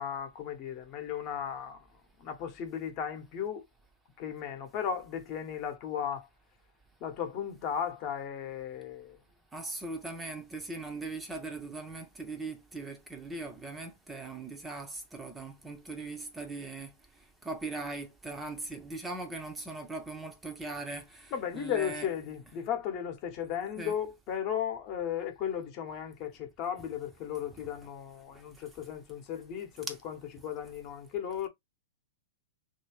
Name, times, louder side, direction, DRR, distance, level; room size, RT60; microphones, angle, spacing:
voice 1, 0.0-1.9 2.2-3.6 4.2-6.3 7.0-9.2 21.3-31.5, left 8 dB, 40° left, 0.9 m, -35 dB
voice 2, 9.5-16.9 17.4-22.1 23.8-23.9 28.3-28.6 29.9-30.0, right 3 dB, 10° right, 0.6 m, -40 dB
2.8 x 2.7 x 3.1 m
hypercardioid pair, 120°, 0 cm